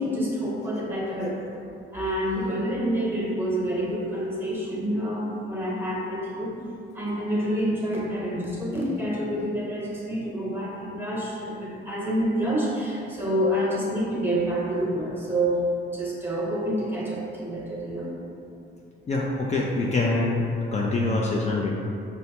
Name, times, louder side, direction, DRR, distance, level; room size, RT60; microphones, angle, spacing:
voice 1, 0.0-1.6 1.9-6.6 6.9-18.1, equal, 10° right, -5 dB, 1.0 m, -28 dB
voice 2, 19.1-21.7, left 2 dB, 35° left, -3 dB, 0.4 m, -25 dB
5.1 x 2.2 x 2.8 m, 2.6 s
cardioid pair, 90°, 20 cm